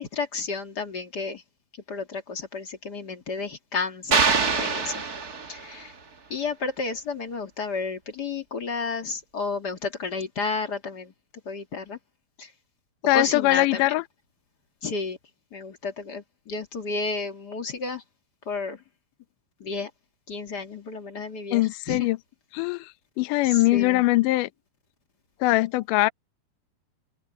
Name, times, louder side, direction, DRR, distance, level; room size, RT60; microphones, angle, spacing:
voice 1, 0.0-1.4 1.9-5.0 5.5-5.9 6.3-11.1 11.4-12.0 12.4-12.5 13.1-13.9 14.8-15.2 15.5-18.0 18.4-18.8 19.6-19.9 20.3-22.1 23.4-24.0, left 4 dB, 35° left, 1.7 m, -32 dB
sound 1, 4.1-5.8, right 5 dB, 40° right, 1.4 m, -24 dB
voice 2, 13.1-14.0 21.5-22.2 22.5-22.9 23.2-24.5 25.4-26.1, left 19 dB, 80° left, 1.9 m, -21 dB
open air
omnidirectional pair, 4.6 m